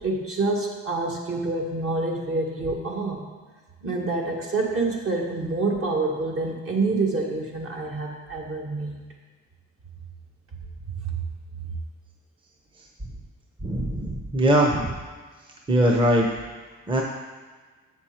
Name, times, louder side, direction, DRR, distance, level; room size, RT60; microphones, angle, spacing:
voice 1, 0.0-3.3 3.8-9.0 11.0-11.1, right 3 dB, 50° right, -1 dB, 1.7 m, -27 dB
voice 2, 13.6-15.0 15.7-16.3 16.9-17.0, right 1 dB, 15° right, 0 dB, 0.8 m, -21 dB
7.5 x 6.1 x 4.4 m, 1.4 s
cardioid pair, 90°, 30 cm